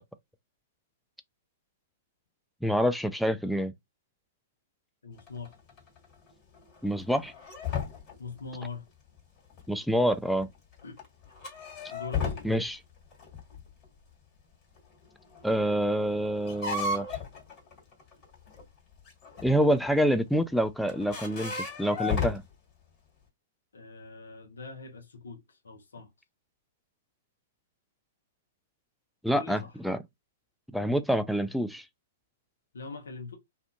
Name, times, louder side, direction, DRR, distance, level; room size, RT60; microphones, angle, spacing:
voice 1, 2.6-3.7 6.8-7.3 9.7-10.5 12.4-12.8 15.4-17.1 19.4-22.4 29.2-30.0 30.7-31.8, equal, ahead, 0.3 m, -27 dB
voice 2, 5.0-5.6 8.2-8.9 10.8-11.0 11.9-12.5 23.7-26.1 29.3-29.7 32.7-33.4, left 4 dB, 80° left, 0.7 m, -42 dB
sound 1, 5.2-8.4 8.9-9.0 9.5-9.7 10.4-12.7 13.1-13.9 14.8-14.9 15.0-18.6 19.1-20.3 20.7-22.4, left 5 dB, 35° left, 1.6 m, -35 dB
2.6 x 2.4 x 2.2 m
hypercardioid pair, 115°, 0 cm